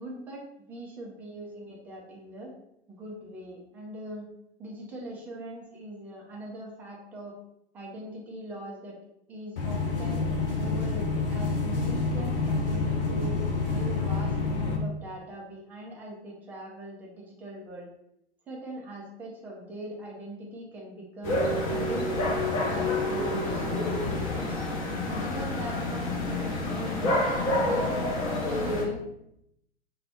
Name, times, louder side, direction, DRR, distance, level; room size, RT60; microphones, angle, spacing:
voice 1, 0.0-2.5 2.9-4.2 4.6-7.4 7.7-9.0 9.3-10.2 10.6-13.4 13.7-17.9 18.5-21.4 21.7-24.0 25.1-27.2 27.5-29.0, right 1 dB, 5° right, -3 dB, 0.3 m, -41 dB
sound 1, 9.6-14.8, left 3 dB, 55° left, 1.1 m, -28 dB
sound 2, 21.2-28.8, left 2 dB, 35° left, 1.1 m, -28 dB
4.0 x 2.3 x 4.1 m, 0.79 s
figure-of-eight pair, 110°, 33 cm